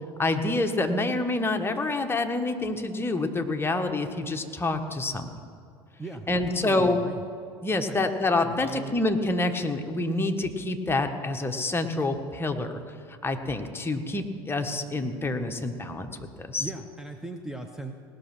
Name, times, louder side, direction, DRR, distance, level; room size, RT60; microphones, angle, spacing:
voice 1, 0.2-5.3 6.3-7.0 7.6-12.8 13.1-16.1 16.4-16.7, left 2 dB, 15° left, 5 dB, 1.3 m, -27 dB
voice 2, 6.0-7.2 7.9-8.0 8.4-8.9 16.6-18.0, right 2 dB, 5° right, 4 dB, 0.9 m, -38 dB
18.5 x 6.4 x 6.1 m, 2.4 s
hypercardioid pair, 70°, 14 cm